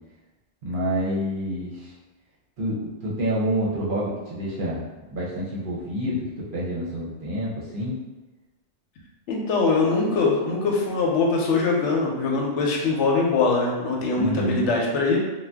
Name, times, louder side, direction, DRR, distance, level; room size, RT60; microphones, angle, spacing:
voice 1, 0.6-1.9 2.6-4.8 5.1-8.0 14.1-14.7, equal, 50° right, -6 dB, 0.8 m, -28 dB
voice 2, 9.3-15.2, left 3 dB, 80° left, -1 dB, 0.9 m, -22 dB
2.6 x 2.2 x 3.4 m, 1.1 s
omnidirectional pair, 1.2 m